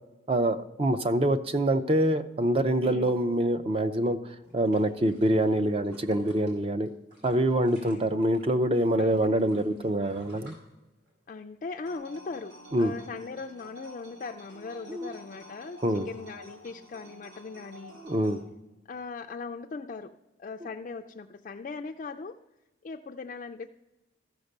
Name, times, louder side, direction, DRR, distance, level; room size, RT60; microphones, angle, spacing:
voice 1, 0.3-4.2 4.5-6.9 7.2-10.5 12.7-12.9 14.9-15.1 15.8-16.1 18.0-18.4, right 1 dB, 30° right, 11 dB, 0.5 m, -25 dB
voice 2, 2.8-3.2 7.8-8.2 9.0-9.3 11.3-18.0 18.9-20.1 20.4-22.4 22.8-23.7, left 4 dB, 40° left, 2 dB, 0.3 m, -39 dB
sound 1, 4.3-8.5 8.8-11.3 11.7-11.8, equal, 60° right, 3.7 m, -54 dB
sound 2, 11.8-18.4, right 1 dB, 80° right, 2.9 m, -50 dB
14.0 x 5.1 x 6.5 m, 1.1 s
head